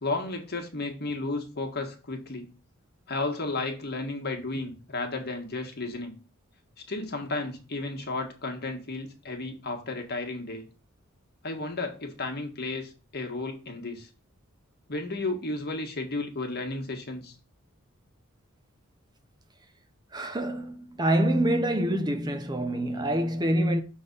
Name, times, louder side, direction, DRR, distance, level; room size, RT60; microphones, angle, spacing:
voice 1, 0.0-2.5 3.1-6.1 6.9-10.7 11.4-14.1 14.9-17.3, left 2 dB, 50° left, 1.6 m, -33 dB
voice 2, 20.1-23.8, right 1 dB, 20° right, 0.7 m, -26 dB
6.7 x 3.9 x 5.3 m
head